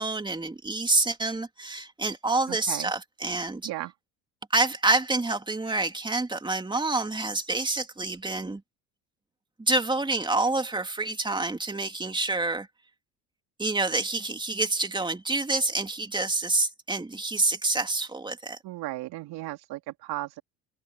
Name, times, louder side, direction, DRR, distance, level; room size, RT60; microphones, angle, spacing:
voice 1, 0.0-3.7 4.5-8.6 9.6-12.7 13.6-18.6, right 2 dB, 10° right, 3.2 m, -27 dB
voice 2, 2.5-2.9 3.6-3.9 18.6-20.4, right 17 dB, 65° right, 3.2 m, -35 dB
supercardioid pair, 90°, 41 cm